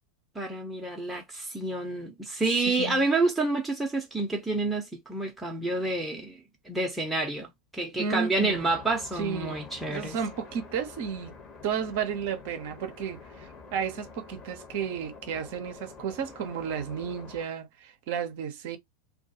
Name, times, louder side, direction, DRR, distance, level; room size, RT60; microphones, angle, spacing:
voice 1, 0.3-6.4 6.7-10.2, right 2 dB, 5° right, 0.7 m, -29 dB
voice 2, 2.5-3.1 8.0-8.7 9.2-11.3 11.6-18.8, right 7 dB, 50° right, 0.6 m, -33 dB
sound 1, 8.5-17.5, left 4 dB, 30° left, 0.9 m, -47 dB
2.3 x 2.3 x 2.8 m
figure-of-eight pair, 90°, 0 cm